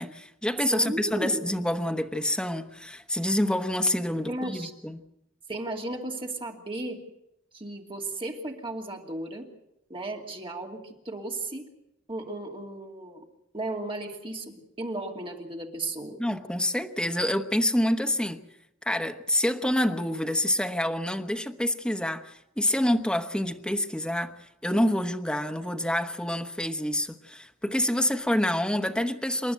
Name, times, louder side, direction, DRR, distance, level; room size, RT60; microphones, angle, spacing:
voice 1, 0.0-5.0 16.2-18.4 18.8-29.5, left 1 dB, 5° left, 1.1 m, -27 dB
voice 2, 0.7-1.4 4.3-4.7 5.5-7.0 7.5-9.5 9.9-11.7 12.1-13.3 13.5-16.2, right 2 dB, 25° right, 2.6 m, -35 dB
28.0 x 11.5 x 9.2 m
head